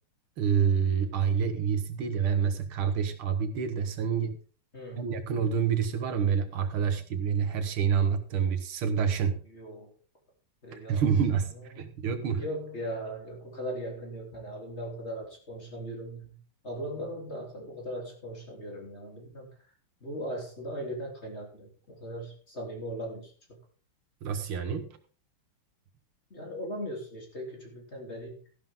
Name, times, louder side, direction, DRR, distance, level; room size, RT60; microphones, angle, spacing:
voice 1, 0.4-4.4 5.0-9.4 10.9-12.4 24.2-24.9, right 7 dB, 75° right, 9 dB, 2.1 m, -27 dB
voice 2, 4.7-5.3 9.4-9.9 10.6-11.1 11.5-11.7 12.4-19.5 20.0-23.3 26.3-28.4, equal, 30° left, 0 dB, 3.8 m, -39 dB
14.0 x 11.5 x 3.7 m, 0.40 s
omnidirectional pair, 2.4 m